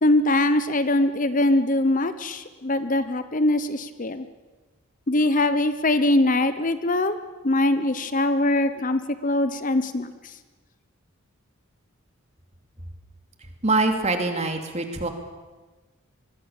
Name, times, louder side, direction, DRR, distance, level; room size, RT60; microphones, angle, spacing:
voice 1, 0.0-4.2 5.1-7.2 7.4-10.1, left 1 dB, 35° left, 12 dB, 0.9 m, -22 dB
voice 2, 13.6-15.1, right 3 dB, 30° right, 5 dB, 2.7 m, -24 dB
25.5 x 21.0 x 7.2 m, 1.3 s
head